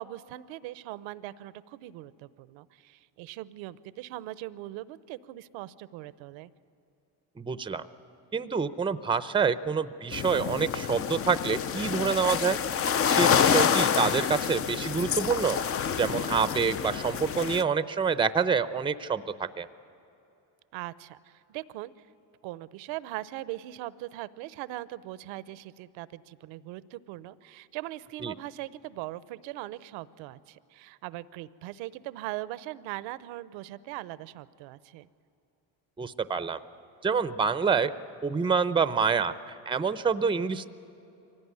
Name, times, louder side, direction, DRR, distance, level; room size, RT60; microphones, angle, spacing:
voice 1, 0.0-6.5 20.7-22.1 22.4-35.1, right 16 dB, 70° right, 17 dB, 0.8 m, -40 dB
voice 2, 7.4-7.8 8.3-12.6 13.1-15.6 16.0-19.2 19.6-19.7 28.2-28.3 36.0-36.6 37.0-37.9 38.2-40.7, right 5 dB, 10° right, 13 dB, 0.6 m, -27 dB
sound 1, 10.1-17.6, left 7 dB, 30° left, 0.5 m, -27 dB
24.0 x 17.5 x 9.7 m, 2.8 s
supercardioid pair, 90°, 47 cm